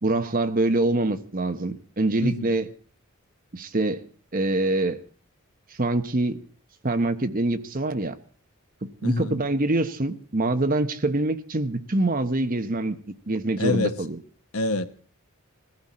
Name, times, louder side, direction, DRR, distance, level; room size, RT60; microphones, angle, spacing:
voice 1, 0.0-2.7 3.5-4.0 4.3-5.0 5.8-6.4 6.8-8.1 8.8-13.0 13.3-14.2, right 2 dB, 40° right, 1.1 m, -25 dB
voice 2, 9.0-9.4 13.6-14.0 14.5-14.8, left 3 dB, 90° left, 1.2 m, -26 dB
20.5 x 15.0 x 4.3 m
head